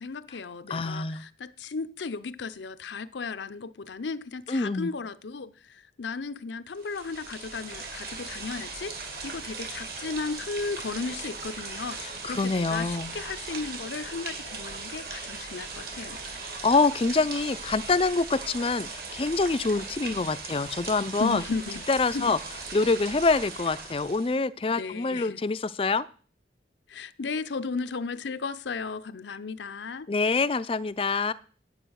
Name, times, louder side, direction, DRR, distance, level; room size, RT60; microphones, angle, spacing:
voice 1, 0.0-16.2 21.2-21.8 22.1-22.3 24.7-25.4 26.9-30.1, left 4 dB, 80° left, 0.6 m, -35 dB
voice 2, 0.7-1.2 4.5-4.9 12.0-13.1 16.4-21.4 21.9-22.4 22.7-26.1 30.1-31.3, left 3 dB, 30° left, 0.4 m, -26 dB
sound 1, 6.7-24.4, right 4 dB, 55° right, 2.4 m, -39 dB
8.9 x 8.9 x 6.3 m
head